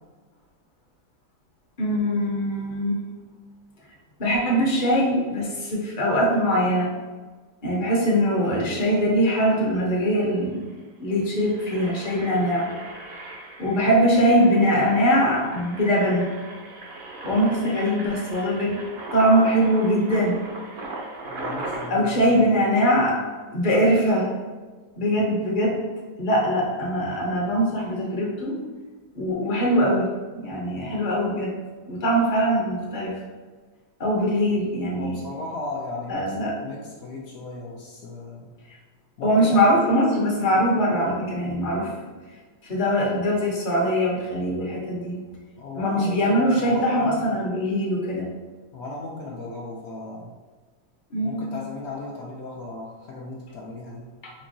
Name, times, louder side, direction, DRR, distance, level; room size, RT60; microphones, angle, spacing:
voice 1, 1.8-3.0 4.2-6.9 7.6-10.6 11.0-12.7 13.6-16.3 17.2-18.8 19.1-20.4 21.9-23.2 23.5-24.3 25.0-25.8 26.2-28.6 29.1-31.5 31.8-33.1 34.0-35.2 36.1-36.5 39.2-41.9 42.6-45.2 45.8-48.3 51.1-51.4 54.2-54.3, equal, 40° left, -3 dB, 0.7 m, -22 dB
Engine, 10.5-10.7 11.2-21.9, right 2 dB, 65° right, 0.6 m, -38 dB
voice 2, 21.2-22.7 25.0-25.2 34.9-38.5 39.2-39.6 45.6-47.4 48.7-50.3 51.2-54.0, left 2 dB, 75° left, -4 dB, 0.5 m, -36 dB
4.4 x 2.8 x 2.6 m, 1.4 s
omnidirectional pair, 1.8 m